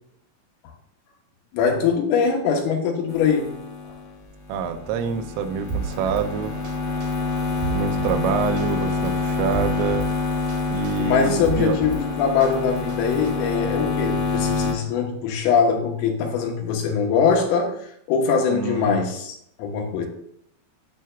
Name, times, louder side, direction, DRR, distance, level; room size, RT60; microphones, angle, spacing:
voice 1, 1.5-3.5 11.0-17.8 18.1-20.1, left 6 dB, 85° left, 1 dB, 3.7 m, -22 dB
sound 1, 3.1-14.7, left 4 dB, 65° left, 2.1 m, -27 dB
voice 2, 4.5-6.6 7.7-10.1 10.7-11.8 18.5-19.1, right 6 dB, 90° right, 7 dB, 3.3 m, -26 dB
Drum kit, 5.7-6.3 6.6-6.7 7.0-8.2 8.6-8.7 9.0-10.1 10.5-10.6 10.8-12.0 12.4-13.3, right 6 dB, 70° right, 2.3 m, -31 dB
Wind, 5.8-13.5, right 1 dB, 35° right, 1.4 m, -41 dB
10.5 x 6.6 x 2.3 m, 0.72 s
omnidirectional pair, 5.7 m